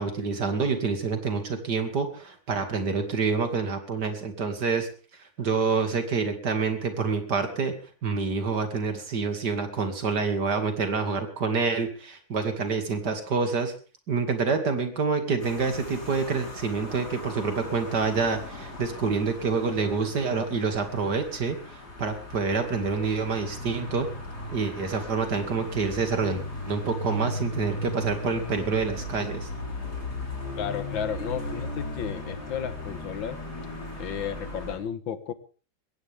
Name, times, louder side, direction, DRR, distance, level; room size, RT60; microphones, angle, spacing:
voice 1, 0.0-4.9 5.2-7.7 8.0-13.7 14.1-24.1 24.5-29.5, right 4 dB, 60° right, 6 dB, 2.9 m, -27 dB
sound 1, 15.4-34.8, left 2 dB, 55° left, 5.2 m, -37 dB
voice 2, 30.6-33.4 34.0-35.3, left 8 dB, 80° left, 12 dB, 2.0 m, -33 dB
21.5 x 17.0 x 3.6 m, 0.38 s
omnidirectional pair, 2.1 m